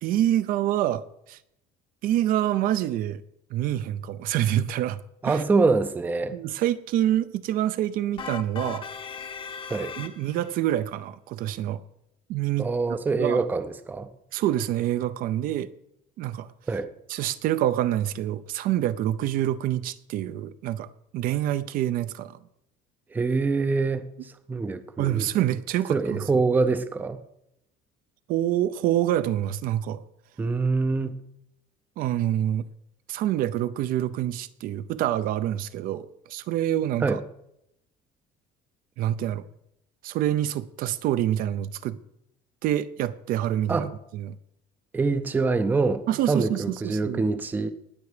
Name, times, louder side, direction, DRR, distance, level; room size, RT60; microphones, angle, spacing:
voice 1, 0.0-1.4 2.0-3.2 3.5-5.4 6.3-8.9 10.0-11.8 12.3-13.4 14.3-15.7 16.2-16.5 17.1-22.4 25.0-26.2 28.3-30.0 32.0-32.7 33.1-37.2 39.0-39.4 40.0-42.0 42.6-43.9 44.1-44.3 46.1-47.2, right 12 dB, 55° right, 0.6 m, -26 dB
voice 2, 5.2-6.4 9.7-10.0 12.6-14.1 16.7-16.9 23.1-25.3 25.9-27.2 30.4-31.2 37.0-37.2 43.7-43.9 44.9-47.7, right 4 dB, 10° right, 0.5 m, -25 dB
sound 1, 8.2-10.6, left 6 dB, 30° left, 0.8 m, -38 dB
19.0 x 7.1 x 4.9 m
cardioid pair, 180°, 18 cm